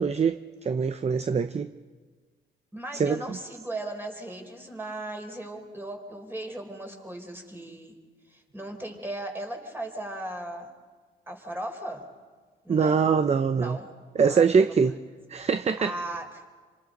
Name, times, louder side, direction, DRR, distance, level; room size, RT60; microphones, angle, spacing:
voice 1, 0.0-1.7 3.0-3.2 12.7-13.8 14.2-14.9 15.3-16.0, right 6 dB, 35° right, 0.8 m, -23 dB
voice 2, 2.7-8.0 8.3-10.7 11.3-12.0 12.6-13.0 13.5-13.9 14.2-14.7 15.8-16.4, right 1 dB, 10° right, 4.7 m, -37 dB
27.5 x 26.0 x 5.3 m
cardioid pair, 90°, 20 cm